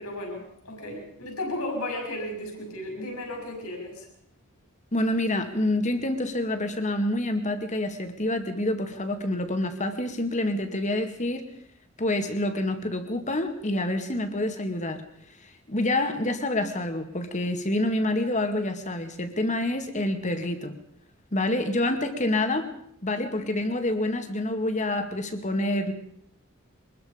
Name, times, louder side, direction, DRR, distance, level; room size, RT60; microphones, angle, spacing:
voice 1, 0.0-4.1, left 1 dB, 75° left, 1 dB, 6.3 m, -34 dB
voice 2, 4.9-11.4 12.0-15.0 15.4-20.7 21.3-22.7 23.0-25.9, left 1 dB, 35° left, 7 dB, 2.1 m, -27 dB
24.0 x 21.0 x 5.2 m, 0.71 s
head